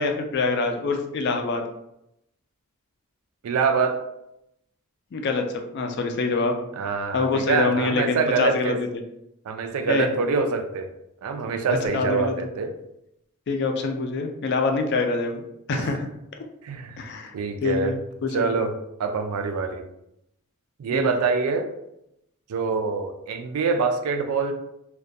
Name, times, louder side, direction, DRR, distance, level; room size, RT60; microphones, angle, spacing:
voice 1, 0.0-1.6 5.1-6.5 7.1-8.9 9.9-10.1 11.9-12.4 13.5-15.4 15.7-16.1 17.0-17.3 17.6-18.0 18.2-18.5 20.9-21.2, left 3 dB, 50° left, 4 dB, 0.3 m, -25 dB
voice 2, 3.4-4.0 6.8-8.8 9.5-10.9 11.2-12.7 15.7-16.0 16.6-17.0 17.3-18.0 18.3-18.7 19.0-19.9 20.8-21.7 22.5-24.5, right 4 dB, 80° right, 7 dB, 0.3 m, -25 dB
2.2 x 2.2 x 2.6 m, 0.81 s
head